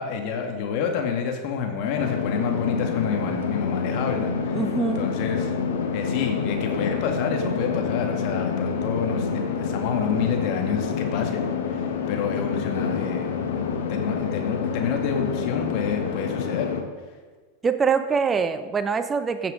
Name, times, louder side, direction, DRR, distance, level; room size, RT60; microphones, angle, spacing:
voice 1, 0.0-4.6 5.0-5.5 5.9-16.7, left 6 dB, 55° left, 4 dB, 2.1 m, -28 dB
sound 1, 2.0-16.8, left 6 dB, 70° left, 1.4 m, -27 dB
voice 2, 4.5-5.2 17.6-19.5, right 5 dB, 25° right, 11 dB, 0.7 m, -24 dB
15.5 x 7.4 x 5.2 m, 1.4 s
hypercardioid pair, 90°, 0 cm